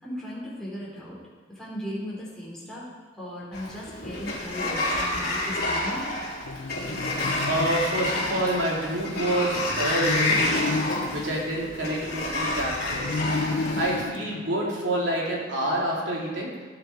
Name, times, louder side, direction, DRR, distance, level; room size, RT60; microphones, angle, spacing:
voice 1, 0.0-1.2 1.5-2.9 3.2-6.1, equal, 5° left, -7 dB, 4.8 m, -37 dB
Sliding door, 3.5-14.0, left 1 dB, 55° left, 3.7 m, -29 dB
sound 1, 6.4-8.6 9.7-12.4 12.9-15.2, left 3 dB, 70° left, 0.7 m, -32 dB
voice 2, 7.2-10.8 11.1-13.2 13.5-16.5, right 1 dB, 65° right, -4 dB, 3.7 m, -28 dB
18.5 x 8.7 x 4.8 m, 1.5 s
head